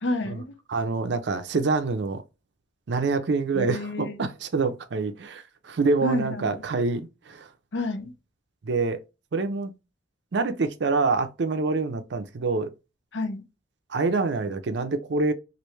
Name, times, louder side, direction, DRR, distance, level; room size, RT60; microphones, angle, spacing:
voice 1, 0.0-0.6 3.5-4.2 6.0-6.6 7.7-8.1 13.1-13.4, left 1 dB, 80° left, 0.6 m, -29 dB
voice 2, 0.7-2.2 2.9-7.5 8.6-9.0 9.3-9.7 10.3-12.7 13.9-15.3, right 3 dB, 70° right, 0.5 m, -26 dB
3.1 x 2.6 x 3.1 m
head